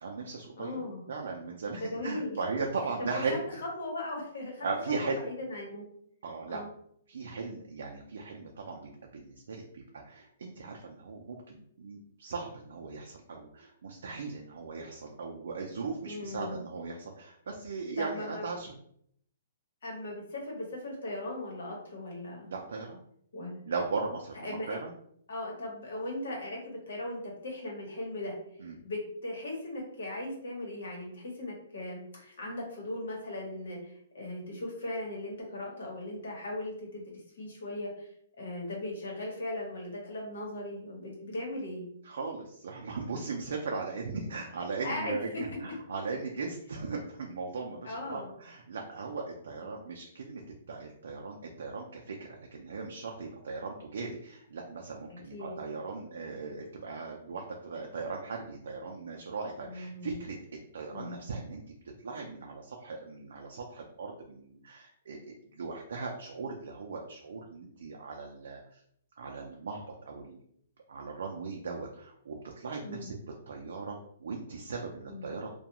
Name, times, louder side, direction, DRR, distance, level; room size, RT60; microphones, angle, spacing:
voice 1, 0.0-0.8 1.1-3.4 4.6-5.2 6.2-6.6 7.1-18.8 22.5-23.0 23.7-24.9 28.6-28.8 42.0-45.3 45.6-50.4 50.7-60.4 60.7-61.6 62.0-68.8 69.2-70.4 70.9-73.1 73.5-75.5, right 4 dB, 80° right, 0 dB, 0.4 m, -38 dB
voice 2, 0.6-1.0 1.7-2.4 3.0-3.1 3.6-4.7 5.0-5.9 6.5-6.7 16.0-16.6 18.0-18.4 19.8-22.5 23.3-23.6 24.4-24.8 25.3-28.3 28.8-37.0 37.4-38.1 38.4-41.9 44.8-45.4 47.8-48.3 49.6-49.8 55.1-55.6 59.6-60.2 60.9-61.2 72.8-73.1 75.1-75.2, left 1 dB, 80° left, -1 dB, 1.1 m, -38 dB
2.3 x 2.2 x 2.8 m, 0.67 s
hypercardioid pair, 175°, 0 cm